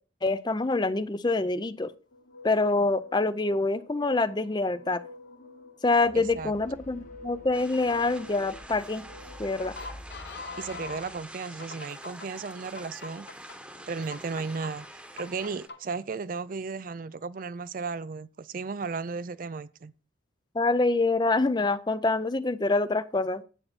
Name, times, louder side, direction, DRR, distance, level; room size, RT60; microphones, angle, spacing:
voice 1, 0.2-1.9 2.4-5.0 5.8-9.0 9.4-9.8 20.5-23.4, left 3 dB, 20° left, 0.5 m, -26 dB
sound 1, 2.1-11.1 11.6-12.3 12.8-13.6 14.1-14.7 15.2-16.0, left 3 dB, 55° left, 0.9 m, -45 dB
sound 2, 6.0-11.3, left 1 dB, 40° left, 1.2 m, -50 dB
voice 2, 6.1-6.5 10.6-13.3 13.9-14.9 15.1-19.9, right 4 dB, 45° right, 0.4 m, -35 dB
sound 3, 7.5-15.7, right 1 dB, 5° right, 1.0 m, -46 dB
10.0 x 8.3 x 4.1 m
head